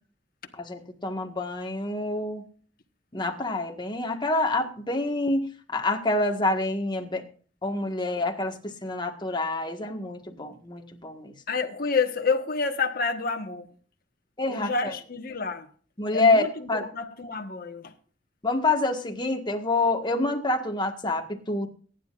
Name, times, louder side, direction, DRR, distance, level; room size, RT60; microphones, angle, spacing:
voice 1, 0.6-2.4 3.1-7.2 7.6-11.3 14.4-14.7 16.0-16.8 18.4-21.7, left 2 dB, 25° left, 1.5 m, -27 dB
voice 2, 11.5-13.7 14.5-15.7 16.1-17.9, left 4 dB, 50° left, 1.3 m, -29 dB
23.0 x 10.5 x 2.5 m
head